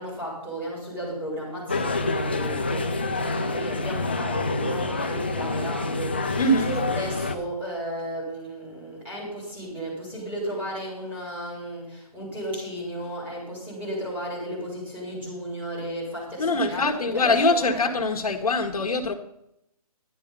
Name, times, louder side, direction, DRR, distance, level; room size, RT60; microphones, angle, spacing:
voice 1, 0.0-16.8 17.1-17.8, equal, 10° right, -7 dB, 4.5 m, -34 dB
sound 1, 1.7-7.3, left 3 dB, 15° left, 0.3 m, -27 dB
voice 2, 6.4-6.7 16.4-19.1, left 2 dB, 65° left, 4 dB, 1.4 m, -23 dB
11.0 x 10.5 x 5.3 m, 0.80 s
hypercardioid pair, 165°, 20 cm